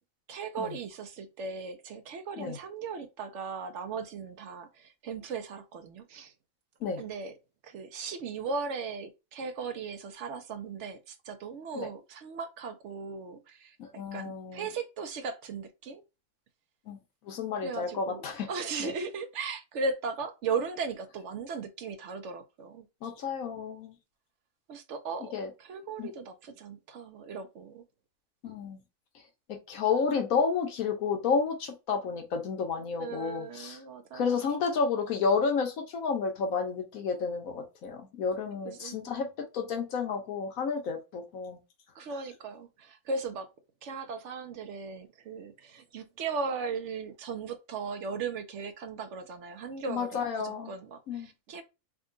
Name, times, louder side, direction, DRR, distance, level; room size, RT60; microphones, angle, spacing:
voice 1, 0.3-6.3 7.0-7.4 7.6-13.8 14.1-16.0 17.6-22.8 24.7-25.3 25.6-27.8 33.0-34.4 38.6-39.1 42.0-43.5 43.8-51.6, right 4 dB, 65° right, 0.8 m, -37 dB
voice 2, 13.8-14.7 16.9-17.0 17.2-18.5 18.8-18.9 23.0-23.9 25.3-25.5 26.0-26.1 28.4-28.8 29.7-33.8 34.1-39.3 39.5-41.6 49.9-50.7 51.1-51.3, left 5 dB, 80° left, 1.3 m, -31 dB
3.6 x 2.2 x 3.7 m
omnidirectional pair, 1.4 m